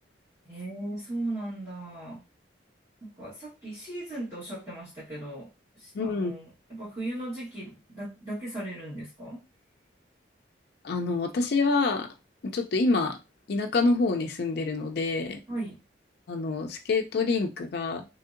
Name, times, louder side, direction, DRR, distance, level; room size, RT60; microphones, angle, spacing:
voice 1, 0.5-2.2 3.0-5.5 5.8-9.4 15.5-15.8, right 1 dB, 15° right, -10 dB, 1.2 m, -37 dB
voice 2, 5.9-6.3 10.8-12.1 12.4-13.2 13.5-15.4 16.3-18.1, left 3 dB, 55° left, 4 dB, 0.4 m, -26 dB
3.1 x 2.6 x 2.5 m, 0.26 s
head